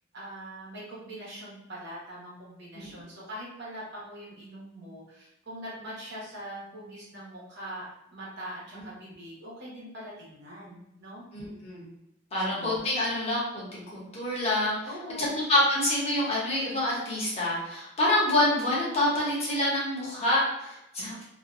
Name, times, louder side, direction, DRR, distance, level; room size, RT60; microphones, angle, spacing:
voice 1, 0.1-7.8 8.1-11.2 12.3-12.8 14.8-15.4 21.0-21.2, equal, 60° right, -6 dB, 1.0 m, -42 dB
voice 2, 11.3-11.9 12.3-13.8 14.1-14.8 15.2-21.2, left 1 dB, 35° left, -6 dB, 0.9 m, -27 dB
2.4 x 2.2 x 2.5 m, 0.86 s
head